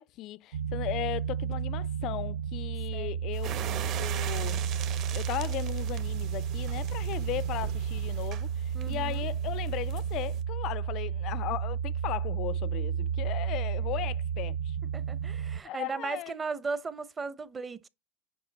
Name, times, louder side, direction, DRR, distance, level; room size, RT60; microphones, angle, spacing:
voice 1, 0.0-3.5 4.0-4.6 5.1-14.8 15.6-16.3, left 15 dB, 45° left, 0.4 m, -37 dB
sound 1, 0.5-15.6, right 8 dB, 80° right, 0.6 m, -32 dB
sound 2, 3.3-8.3, right 8 dB, 65° right, 2.3 m, -49 dB
sound 3, 3.4-10.4, right 10 dB, 45° right, 1.5 m, -42 dB
voice 2, 8.7-9.2 14.9-17.9, right 4 dB, 20° right, 0.9 m, -36 dB
8.7 x 5.7 x 4.1 m
supercardioid pair, 130°, 0 cm